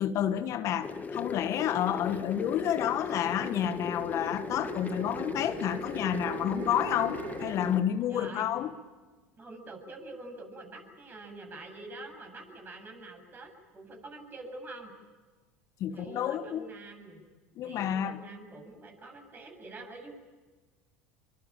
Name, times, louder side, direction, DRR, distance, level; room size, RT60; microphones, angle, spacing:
voice 1, 0.0-8.7 15.8-16.7 17.6-18.2, left 10 dB, 50° left, 1.3 m, -30 dB
sound 1, 0.8-7.8, left 5 dB, 25° left, 1.5 m, -38 dB
sound 2, 2.0-7.6, right 12 dB, 60° right, 1.5 m, -44 dB
voice 2, 8.1-8.5 9.4-14.9 15.9-17.3 17.6-20.2, right 2 dB, 30° right, 7.9 m, -46 dB
26.5 x 24.0 x 8.9 m
hypercardioid pair, 85°, 7 cm